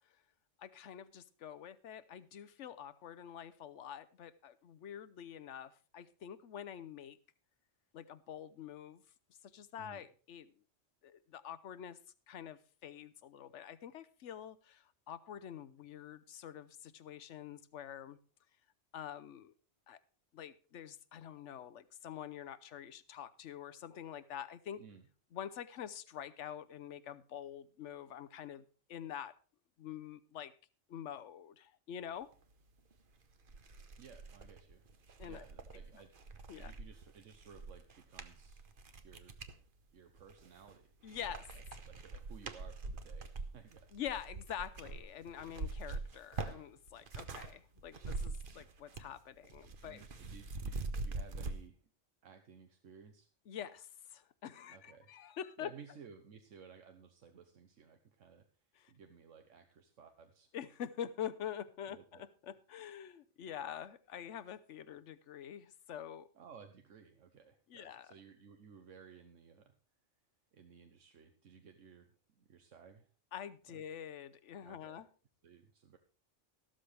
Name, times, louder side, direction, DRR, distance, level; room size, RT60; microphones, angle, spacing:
voice 1, 0.6-7.2 7.9-9.0 9.5-10.5 11.0-12.0 12.3-18.2 18.9-19.5 19.9-20.0 20.3-24.8 25.3-29.4 29.8-30.5 30.9-32.3 35.2-35.4 36.5-36.7 41.0-41.5 43.9-50.0 53.5-55.7 58.8-58.9 60.5-66.3 67.7-68.1 73.3-75.1, left 9 dB, 75° left, 14 dB, 1.1 m, -46 dB
sound 1, 32.9-33.0 33.4-39.6 40.2-40.8 41.1-47.5 47.8-49.2 49.4-51.5, right 3 dB, 50° right, 1.0 m, -44 dB
voice 2, 34.0-34.8 35.2-38.6 39.0-39.4 39.9-40.9 41.2-44.0 49.8-51.8 52.2-53.3 54.7-55.1 55.6-58.5 58.9-60.5 61.9-62.2 66.3-69.7 70.5-73.1 73.7-73.8 74.6-75.0 75.4-76.0, right 6 dB, 85° right, 6 dB, 1.3 m, -57 dB
14.0 x 12.5 x 3.3 m, 0.38 s
omnidirectional pair, 1.3 m